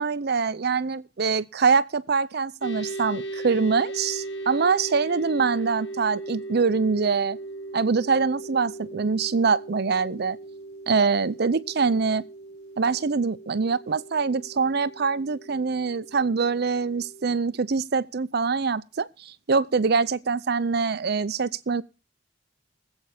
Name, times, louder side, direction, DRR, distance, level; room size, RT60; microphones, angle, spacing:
voice 1, 0.0-7.4 7.7-10.4 10.9-12.2 12.8-21.8, right 5 dB, 55° right, 0.6 m, -24 dB
sound 1, 2.6-17.4, right 2 dB, 70° left, 2.0 m, -38 dB
20.0 x 8.2 x 4.9 m
head